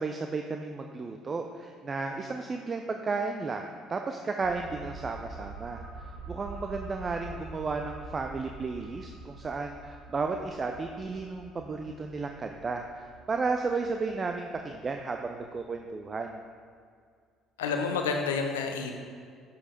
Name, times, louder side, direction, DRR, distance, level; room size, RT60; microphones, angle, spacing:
voice 1, 0.0-16.4, right 4 dB, 35° right, 4 dB, 0.5 m, -33 dB
sound 1, 4.4-15.8 16.1-16.2, right 2 dB, 85° right, 0.9 m, -46 dB
voice 2, 17.6-18.9, left 5 dB, 85° left, 4 dB, 0.7 m, -29 dB
7.8 x 5.5 x 5.2 m, 2.1 s
hypercardioid pair, 55°, 0 cm